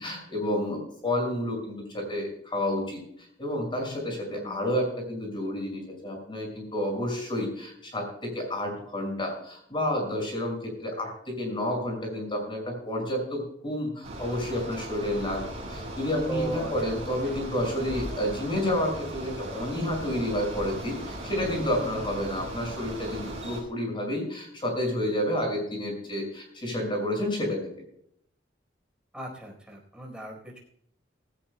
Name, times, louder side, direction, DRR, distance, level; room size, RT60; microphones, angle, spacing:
voice 1, 0.0-3.0 3.4-27.6, left 1 dB, 30° left, 2 dB, 5.9 m, -30 dB
voice 2, 4.3-4.6 16.3-17.4 21.7-22.1 29.1-30.6, right 2 dB, 5° right, -1 dB, 4.2 m, -38 dB
Bicycle, 14.0-23.6, right 1 dB, 35° right, 6.0 m, -38 dB
18.5 x 16.5 x 2.2 m, 0.67 s
head